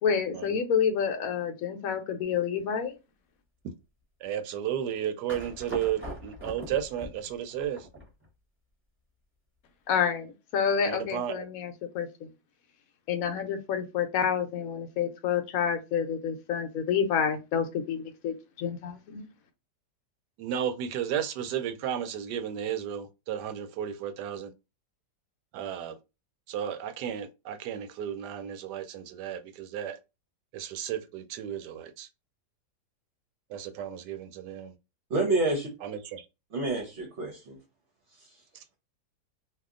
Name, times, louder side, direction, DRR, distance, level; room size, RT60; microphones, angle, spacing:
voice 1, 0.0-2.9 9.9-12.1 13.1-19.3, left 7 dB, 65° left, 1.0 m, -29 dB
voice 2, 4.2-7.8 10.8-11.4 20.4-24.5 25.5-25.9 26.5-30.0 30.5-32.1 33.5-34.7 35.8-36.2, right 9 dB, 80° right, 1.1 m, -33 dB
sound 1, 5.3-8.3, equal, 10° right, 0.8 m, -42 dB
voice 3, 35.1-35.7 36.5-37.6 38.1-38.4, right 2 dB, 55° right, 0.9 m, -29 dB
2.8 x 2.5 x 3.6 m
omnidirectional pair, 1.8 m